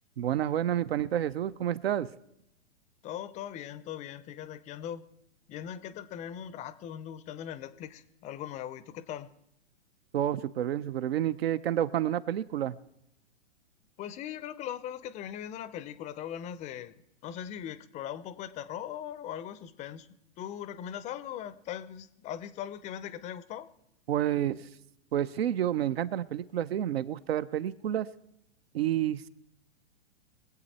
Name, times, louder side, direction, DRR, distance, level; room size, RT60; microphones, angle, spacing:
voice 1, 0.2-2.1 10.1-12.8 24.1-24.7 25.1-28.1 28.7-29.3, right 11 dB, 60° right, 14 dB, 0.8 m, -29 dB
voice 2, 3.0-5.1 5.5-9.3 14.0-16.9 17.2-20.1 20.4-23.7, left 10 dB, 20° left, 15 dB, 0.6 m, -40 dB
23.0 x 8.1 x 4.2 m, 0.79 s
hypercardioid pair, 120°, 33 cm